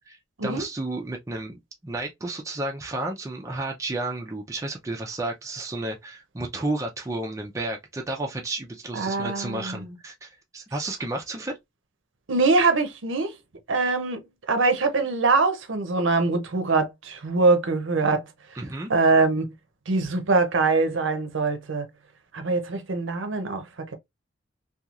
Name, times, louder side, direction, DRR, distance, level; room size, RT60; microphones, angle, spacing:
voice 1, 0.4-11.5 18.6-18.9, right 2 dB, 15° right, 0.4 m, -32 dB
voice 2, 8.9-9.9 12.3-13.4 13.7-18.2 18.9-19.5 19.9-21.9 22.3-23.9, right 3 dB, 70° right, 0.7 m, -23 dB
2.9 x 2.3 x 2.4 m
head